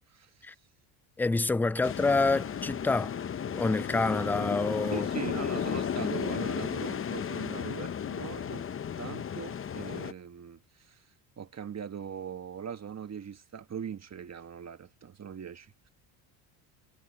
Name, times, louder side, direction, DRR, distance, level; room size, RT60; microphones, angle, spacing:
voice 1, 1.2-3.1 3.5-5.1, left 3 dB, 5° left, 0.4 m, -27 dB
sound 1, 1.8-10.1, left 8 dB, 25° left, 0.9 m, -34 dB
voice 2, 4.9-8.7 9.0-11.0 11.4-15.9, right 7 dB, 30° right, 1.5 m, -40 dB
supercardioid pair, 100°, 49 cm